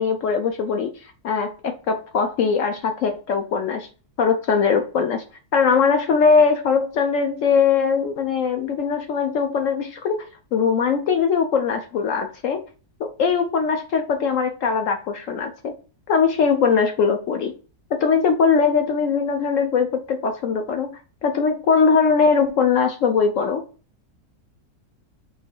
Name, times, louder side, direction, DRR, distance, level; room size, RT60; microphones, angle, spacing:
voice 1, 0.0-3.9 4.2-5.2 5.5-12.6 13.0-15.7 16.1-17.5 17.9-23.6, left 5 dB, 65° left, 0.8 m, -21 dB
3.9 x 3.0 x 4.4 m
omnidirectional pair, 1.7 m